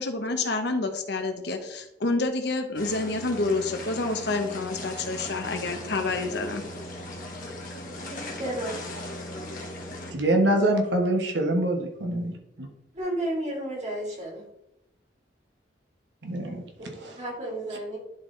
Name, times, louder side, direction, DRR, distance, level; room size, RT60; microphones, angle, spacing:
voice 1, 0.0-6.6, left 3 dB, 65° left, 5 dB, 1.0 m, -28 dB
sound 1, 2.8-10.1, left 1 dB, 50° left, 1.4 m, -38 dB
voice 2, 8.4-8.8 12.9-14.4 16.8-18.0, right 1 dB, 40° right, -4 dB, 2.9 m, -32 dB
voice 3, 10.1-12.7 16.2-16.6 16.9-17.2 17.7-17.8, right 1 dB, 75° right, 2 dB, 1.3 m, -25 dB
11.5 x 4.1 x 3.3 m, 0.87 s
head